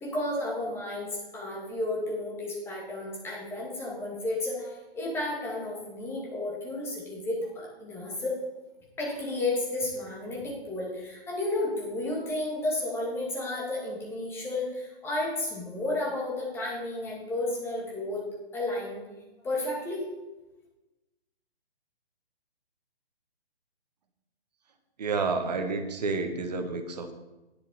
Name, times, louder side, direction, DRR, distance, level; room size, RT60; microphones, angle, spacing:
voice 1, 0.0-8.4 9.0-18.2 18.5-19.0 19.4-20.0, left 2 dB, 5° left, -3 dB, 2.0 m, -32 dB
voice 2, 25.0-27.1, right 4 dB, 40° right, 7 dB, 1.3 m, -30 dB
10.5 x 8.6 x 4.2 m, 1.1 s
figure-of-eight pair, 135°, 32 cm